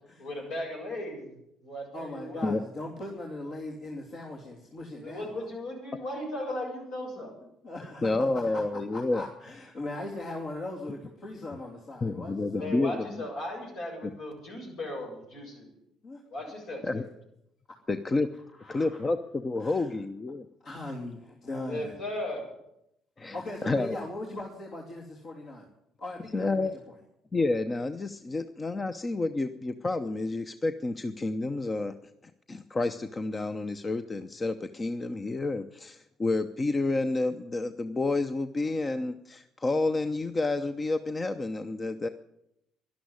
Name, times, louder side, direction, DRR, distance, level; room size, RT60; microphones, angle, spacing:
voice 1, 0.2-1.3 1.6-2.5 4.9-7.3 12.6-15.7 16.3-17.1 21.6-22.5, left 1 dB, 75° left, -1 dB, 7.2 m, -37 dB
voice 2, 1.9-5.4 7.2-7.3 7.6-8.1 8.9-12.7 16.0-16.2 18.6-19.0 19.6-19.9 20.6-21.9 23.3-25.7 26.0-26.7, left 2 dB, 60° left, -3 dB, 2.9 m, -39 dB
voice 3, 8.0-9.2 12.0-13.2 16.8-17.0 17.9-18.3 18.7-20.5 23.2-23.4 23.6-24.0 26.3-26.7 27.3-31.9 32.5-42.1, left 2 dB, 30° left, 9 dB, 0.8 m, -29 dB
12.0 x 11.5 x 9.7 m, 0.81 s
hypercardioid pair, 60°, 0 cm